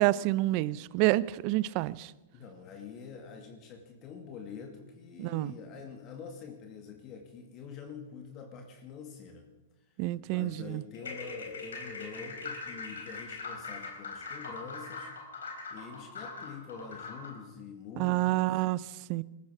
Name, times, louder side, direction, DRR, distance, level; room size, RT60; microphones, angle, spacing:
voice 1, 0.0-2.1 5.2-5.5 10.0-10.8 18.0-19.2, right 18 dB, 50° right, 0.6 m, -28 dB
voice 2, 2.3-9.5 10.3-15.1 15.7-18.6, left 6 dB, 40° left, 2.3 m, -46 dB
sound 1, 10.9-17.4, left 4 dB, 85° left, 4.2 m, -42 dB
20.0 x 14.5 x 4.9 m
hypercardioid pair, 110°, 0 cm